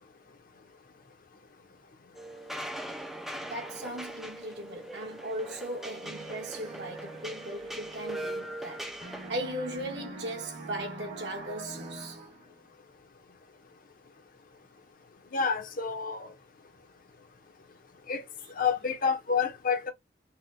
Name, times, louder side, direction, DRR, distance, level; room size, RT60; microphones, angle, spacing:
sound 1, 2.1-9.3, right 1 dB, ahead, 0.4 m, -40 dB
voice 1, 3.4-9.0 9.3-12.2, right 1 dB, 70° right, 1.2 m, -38 dB
sound 2, 6.0-8.8 9.0-12.6, right 2 dB, 45° right, 0.9 m, -45 dB
voice 2, 15.3-16.3 18.1-18.2 18.6-19.9, left 6 dB, 50° left, 0.7 m, -28 dB
4.1 x 2.1 x 2.6 m
head